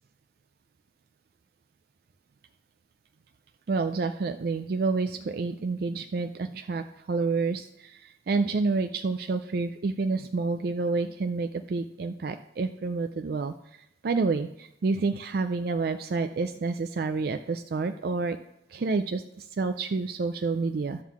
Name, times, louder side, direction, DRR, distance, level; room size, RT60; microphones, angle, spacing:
voice 1, 3.7-13.5 14.0-18.4 18.7-21.0, right 4 dB, 55° right, 8 dB, 0.4 m, -29 dB
11.5 x 3.8 x 7.2 m, 0.84 s
head